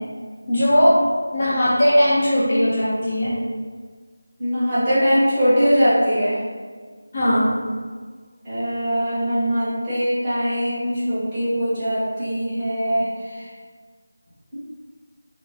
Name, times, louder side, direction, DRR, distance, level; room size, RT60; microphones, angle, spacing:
voice 1, 0.5-1.0 1.3-3.3 7.1-7.5, equal, 30° left, -9 dB, 0.7 m, -18 dB
voice 2, 4.4-6.4 8.4-13.4, equal, 15° right, -14 dB, 0.9 m, -21 dB
2.5 x 2.2 x 3.3 m, 1.5 s
figure-of-eight pair, 170°, 0 cm